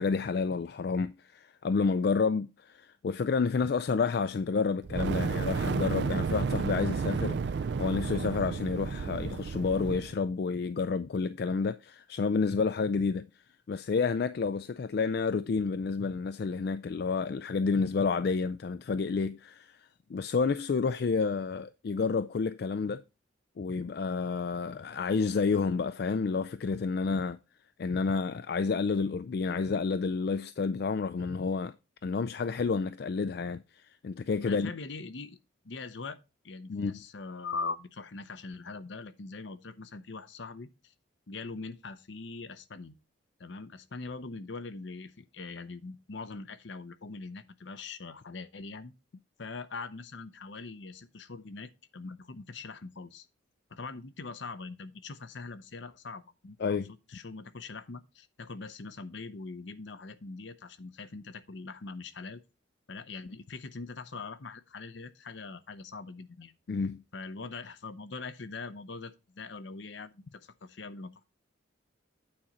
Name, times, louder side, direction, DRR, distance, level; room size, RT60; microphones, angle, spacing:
voice 1, 0.0-13.2 13.7-19.8 20.1-23.0 23.6-27.4 27.8-31.7 32.0-34.7 36.7-37.0 56.6-56.9 66.7-67.0, left 4 dB, 55° left, 0.3 m, -30 dB
Fire, 4.8-10.1, right 5 dB, 60° right, 0.4 m, -32 dB
voice 2, 34.4-35.4 35.6-36.2 36.4-40.9 41.3-43.0 43.4-48.9 49.4-53.3 53.7-56.8 57.1-62.4 62.9-66.5 67.1-71.2, left 4 dB, 70° left, 0.7 m, -42 dB
8.8 x 4.2 x 5.0 m
head